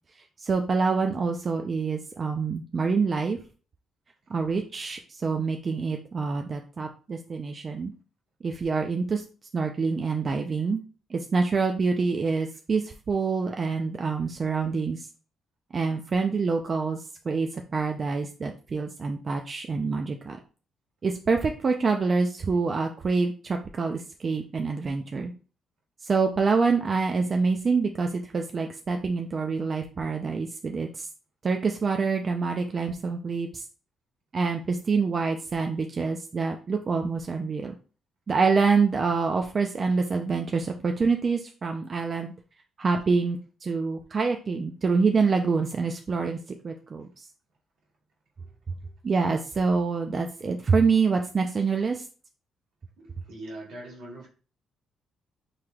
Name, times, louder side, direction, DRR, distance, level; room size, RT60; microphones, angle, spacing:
voice 1, 0.2-3.4 4.3-7.9 8.4-9.2 9.5-10.8 11.1-15.1 15.7-20.4 21.0-25.3 26.0-31.1 31.4-33.6 34.3-37.7 38.3-42.3 42.8-47.3 49.0-52.1, right 4 dB, 40° right, 3 dB, 0.5 m, -26 dB
voice 2, 53.0-54.3, right 1 dB, 80° right, -3 dB, 2.1 m, -41 dB
5.8 x 3.2 x 2.3 m, 0.37 s
cardioid pair, 90°, 0 cm